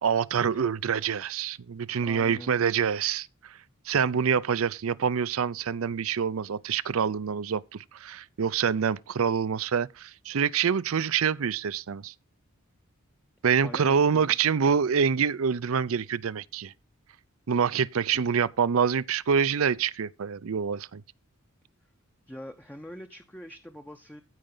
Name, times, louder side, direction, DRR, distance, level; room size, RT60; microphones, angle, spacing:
voice 1, 0.0-3.3 3.9-12.1 13.4-16.7 17.5-21.0, right 7 dB, 70° right, 0.5 m, -26 dB
voice 2, 2.0-2.5 13.6-14.4 18.1-18.2 22.3-24.2, equal, 5° left, 0.7 m, -44 dB
15.5 x 5.2 x 3.8 m
head